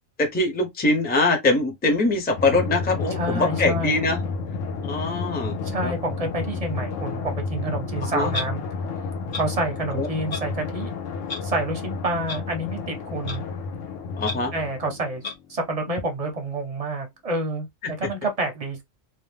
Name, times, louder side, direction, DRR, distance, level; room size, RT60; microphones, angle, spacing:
voice 1, 0.2-4.2 4.8-5.5 5.8-5.9 8.0-8.3 9.9-10.1 14.2-14.5 17.8-17.9, left 2 dB, 10° left, 0.5 m, -23 dB
Drum, 2.4-15.5, left 4 dB, 75° left, 0.9 m, -31 dB
voice 2, 3.2-3.9 5.6-8.6 9.3-10.9 11.4-13.4 14.5-15.2 15.5-17.7 18.0-18.8, right 2 dB, 40° right, 0.6 m, -28 dB
Clock, 8.3-8.5 9.3-9.4 10.3-10.4 11.3-11.4 12.3-12.4 13.3-13.4 14.2-14.3 15.2-15.3, left 3 dB, 45° left, 0.8 m, -30 dB
2.8 x 2.1 x 3.2 m
omnidirectional pair, 1.4 m